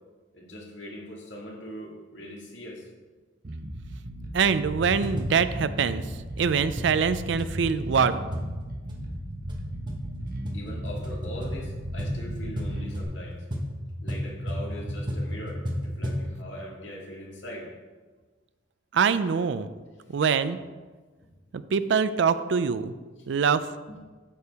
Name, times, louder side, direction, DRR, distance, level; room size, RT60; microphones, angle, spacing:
voice 1, 0.3-2.9 10.5-13.4 14.0-17.7 23.9-24.0, equal, 75° left, -2 dB, 1.9 m, -41 dB
Bass guitar, 3.4-13.0, right 1 dB, 50° right, 0.8 m, -37 dB
voice 2, 4.3-6.0 6.4-8.6 18.9-19.7 20.1-20.6 21.5-22.9 23.3-23.7, right 6 dB, 70° right, 13 dB, 0.4 m, -24 dB
sound 1, 4.6-16.3, equal, 25° right, 1.0 m, -34 dB
8.6 x 6.8 x 3.5 m, 1.4 s
head